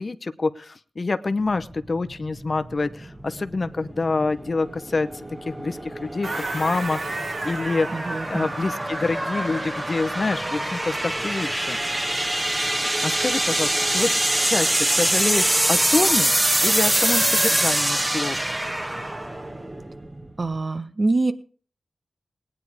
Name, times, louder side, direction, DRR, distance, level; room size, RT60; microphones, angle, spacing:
voice 1, 0.0-5.1 5.4-7.9 8.3-11.8 12.7-14.1 14.4-16.3 16.6-18.4, left 3 dB, 50° left, 11 dB, 0.8 m, -26 dB
sound 1, 1.5-20.6, right 1 dB, 25° right, 1.5 m, -25 dB
sound 2, 6.2-10.6, right 2 dB, 65° right, 3.7 m, -33 dB
voice 2, 7.9-8.5 20.4-21.3, right 2 dB, 45° right, 10 dB, 1.3 m, -24 dB
18.5 x 9.7 x 4.8 m, 0.42 s
wide cardioid pair, 65°, 0 cm